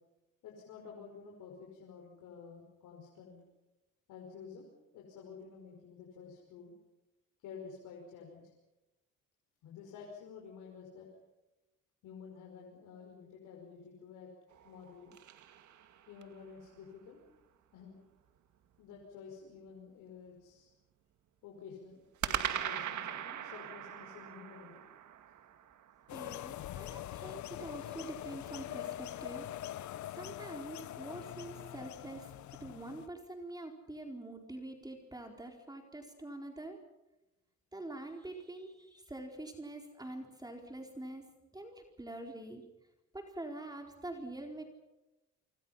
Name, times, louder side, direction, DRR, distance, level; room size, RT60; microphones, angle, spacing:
voice 1, 0.4-3.4 4.1-6.7 7.4-8.4 9.6-11.1 12.0-14.3 14.6-15.2 16.1-17.2 17.7-18.0 18.8-20.7 21.4-24.8, left 6 dB, 90° left, -1 dB, 5.5 m, -51 dB
sound 1, 14.5-16.4 22.2-26.5, right 10 dB, 75° right, 2.2 m, -40 dB
sound 2, 26.1-33.1, left 13 dB, 70° left, 0.8 m, -43 dB
voice 2, 26.1-29.5 30.1-32.3 32.6-36.8 37.7-41.3 41.5-42.6 43.1-44.6, right 2 dB, 15° right, 3 dB, 4.4 m, -45 dB
28.5 x 25.5 x 5.8 m, 0.96 s
cardioid pair, 90°, 30 cm